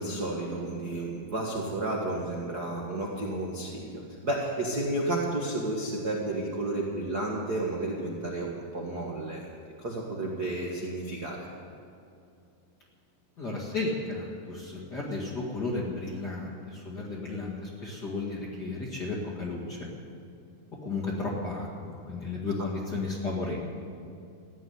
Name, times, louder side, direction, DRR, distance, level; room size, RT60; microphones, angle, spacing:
voice 1, 0.0-9.5 9.8-11.5 22.6-22.7, right 2 dB, 50° right, -2 dB, 1.2 m, -32 dB
voice 2, 13.4-19.9 20.8-23.6, left 3 dB, 35° left, -4 dB, 1.9 m, -33 dB
15.0 x 9.5 x 9.7 m, 2.5 s
omnidirectional pair, 4.4 m